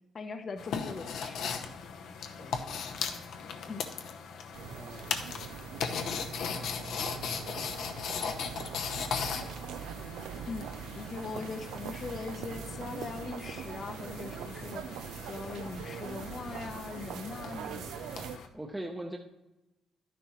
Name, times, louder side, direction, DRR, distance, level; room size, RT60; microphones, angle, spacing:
voice 1, 0.1-1.4 3.6-3.8 10.4-10.7 11.0-17.9, left 4 dB, 45° left, 8 dB, 0.8 m, -41 dB
sound 1, 0.6-18.5, left 6 dB, 75° left, 0.8 m, -38 dB
voice 2, 2.4-3.0 4.7-5.2 18.5-19.2, right 1 dB, 10° right, 1 dB, 0.8 m, -44 dB
sound 2, 4.5-18.4, right 9 dB, 85° right, 0.4 m, -42 dB
11.0 x 10.0 x 3.1 m, 1.0 s
cardioid pair, 90°, 0 cm